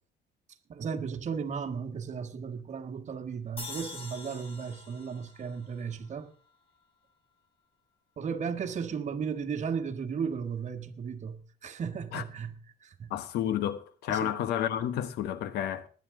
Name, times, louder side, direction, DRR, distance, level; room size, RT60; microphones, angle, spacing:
voice 1, 0.7-6.3 8.2-12.6 12.8-13.1 14.1-14.3, right 6 dB, 45° right, 1.6 m, -35 dB
sound 1, 3.6-6.8, left 3 dB, 35° left, 2.9 m, -45 dB
voice 2, 13.1-15.9, left 10 dB, 80° left, 1.2 m, -31 dB
20.0 x 9.7 x 3.8 m
cardioid pair, 110°, 17 cm